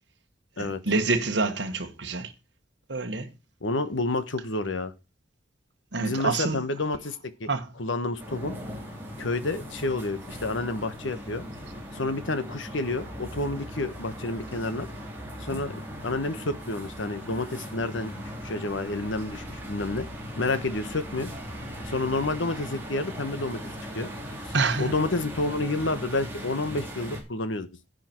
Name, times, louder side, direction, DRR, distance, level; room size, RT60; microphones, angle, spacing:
voice 1, 0.6-2.3 2.9-3.3 5.9-6.6 7.5-7.7 24.5-24.9, right 3 dB, 65° right, 1.5 m, -27 dB
voice 2, 3.6-4.9 6.0-7.5 7.8-8.6 9.2-11.4 11.9-14.9 15.4-15.7 16.0-20.1 20.4-21.3 21.8-24.1 24.4-27.7, left 2 dB, 80° left, 1.3 m, -29 dB
sound 1, 8.2-27.2, equal, 10° right, 3.6 m, -39 dB
10.5 x 9.2 x 4.5 m
head